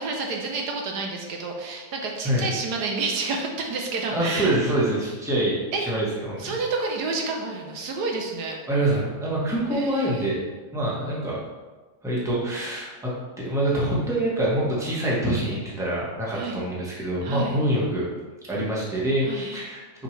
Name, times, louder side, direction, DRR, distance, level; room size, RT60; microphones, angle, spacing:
voice 1, 0.0-4.6 5.7-5.8 6.4-8.6 9.7-10.3 16.3-16.6 17.2-17.6 19.2-19.5, right 3 dB, 75° right, 1 dB, 1.3 m, -29 dB
voice 2, 4.1-6.6 8.7-10.4 10.7-11.4 12.0-18.1 18.5-19.8, right 1 dB, ahead, -5 dB, 1.2 m, -25 dB
6.7 x 5.0 x 3.3 m, 1.3 s
omnidirectional pair, 1.8 m